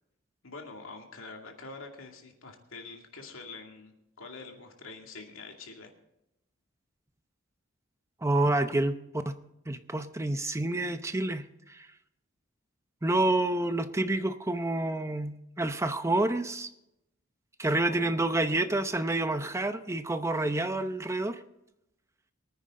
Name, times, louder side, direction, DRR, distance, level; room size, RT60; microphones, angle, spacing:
voice 1, 0.4-5.9 17.7-18.3, left 3 dB, 85° left, 2 dB, 2.4 m, -45 dB
voice 2, 8.2-9.0 9.3-9.4 9.7-11.9 13.0-16.7 17.6-21.4, right 2 dB, 15° right, 9 dB, 0.7 m, -28 dB
24.0 x 9.8 x 3.8 m, 0.85 s
head